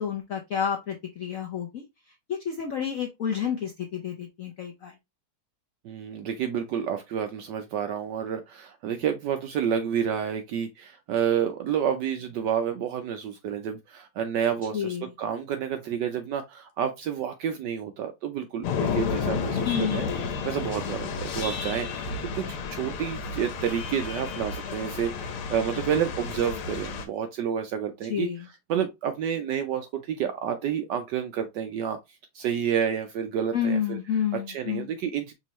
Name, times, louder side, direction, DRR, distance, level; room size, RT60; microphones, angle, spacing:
voice 1, 0.0-4.9 14.7-15.1 19.6-20.2 28.1-28.5 33.5-34.9, left 8 dB, 70° left, 0.7 m, -30 dB
voice 2, 5.8-20.0 20.4-28.3 28.7-32.0 32.3-34.0 34.5-35.3, right 8 dB, 75° right, 1.0 m, -29 dB
sound 1, 18.6-27.0, left 5 dB, 90° left, 1.8 m, -31 dB
5.3 x 2.7 x 3.0 m
omnidirectional pair, 2.3 m